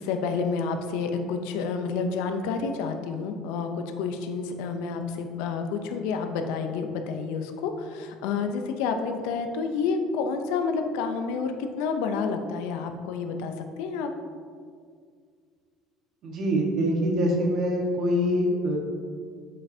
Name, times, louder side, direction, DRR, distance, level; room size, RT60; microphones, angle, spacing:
voice 1, 0.0-11.5 11.8-14.1, left 5 dB, 85° left, 6 dB, 0.6 m, -29 dB
voice 2, 16.2-18.8, equal, 55° right, 0 dB, 1.3 m, -24 dB
7.5 x 5.4 x 2.7 m, 2.1 s
cardioid pair, 125°, 0 cm